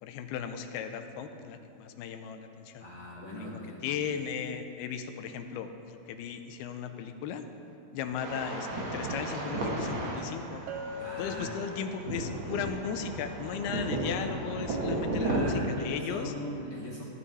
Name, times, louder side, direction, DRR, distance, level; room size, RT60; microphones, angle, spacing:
voice 1, 0.0-2.8 3.8-7.5 7.9-10.6 11.2-16.3, left 7 dB, 85° left, 7 dB, 2.6 m, -36 dB
voice 2, 2.8-3.9 11.0-11.6 15.1-17.0, left 1 dB, 50° left, -5 dB, 1.2 m, -40 dB
sound 1, 8.2-15.4, right 2 dB, 45° right, 1.7 m, -34 dB
Bell, 10.7-12.3, left 2 dB, 80° right, 2.6 m, -41 dB
15.0 x 12.5 x 4.2 m, 2.7 s
omnidirectional pair, 4.5 m